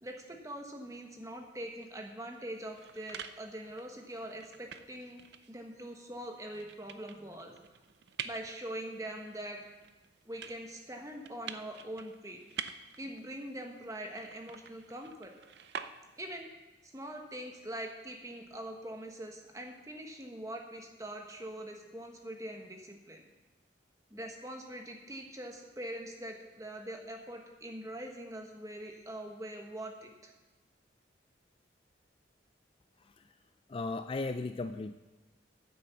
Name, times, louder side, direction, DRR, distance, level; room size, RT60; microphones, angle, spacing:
voice 1, 0.0-5.2 5.5-7.5 8.2-9.6 10.2-12.4 13.0-15.3 16.2-16.5 16.9-23.2 24.1-30.3, right 1 dB, 15° right, 3 dB, 1.3 m, -43 dB
sound 1, 2.5-16.4, right 7 dB, 65° right, 0.5 m, -48 dB
voice 2, 33.7-34.9, left 3 dB, 30° left, 9 dB, 0.3 m, -36 dB
10.0 x 8.2 x 7.0 m, 1.2 s
head